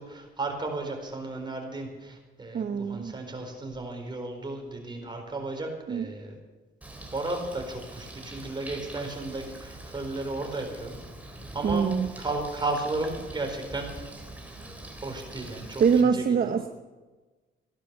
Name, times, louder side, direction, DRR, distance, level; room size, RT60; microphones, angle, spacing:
voice 1, 0.0-6.4 7.1-11.0 11.5-13.9 15.0-16.7, right 2 dB, 25° right, 2 dB, 4.5 m, -34 dB
voice 2, 2.5-3.1 5.9-6.1 11.6-12.1 15.8-16.7, right 6 dB, 45° right, 8 dB, 0.9 m, -24 dB
Bird, 6.8-16.0, right 1 dB, 5° right, 3.5 m, -43 dB
15.5 x 12.0 x 6.9 m, 1.2 s
cardioid pair, 90°, 20 cm